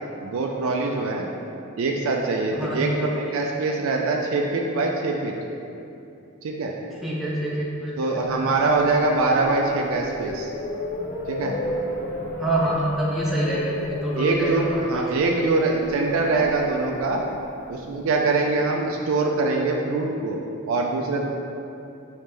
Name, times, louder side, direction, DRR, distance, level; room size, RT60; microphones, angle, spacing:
voice 1, 0.2-1.2 1.8-5.4 6.4-6.7 8.0-10.5 11.3-11.5 13.5-13.6 14.2-17.2 17.7-21.3, right 3 dB, 70° right, 0 dB, 0.4 m, -23 dB
voice 2, 2.5-3.1 7.0-8.7 12.4-15.2, right 1 dB, ahead, -7 dB, 0.5 m, -27 dB
sound 1, 8.3-18.4, left 1 dB, 45° left, 0.6 m, -34 dB
5.1 x 3.2 x 3.2 m, 2.7 s
head